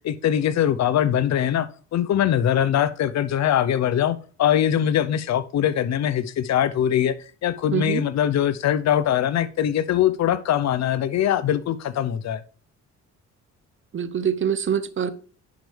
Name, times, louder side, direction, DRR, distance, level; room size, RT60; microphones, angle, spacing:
voice 1, 0.0-7.1 7.4-12.4, left 10 dB, 60° left, 0.7 m, -22 dB
voice 2, 7.7-8.0 13.9-15.1, right 8 dB, 40° right, 0.8 m, -24 dB
10.5 x 4.8 x 3.3 m
cardioid pair, 90°, 30 cm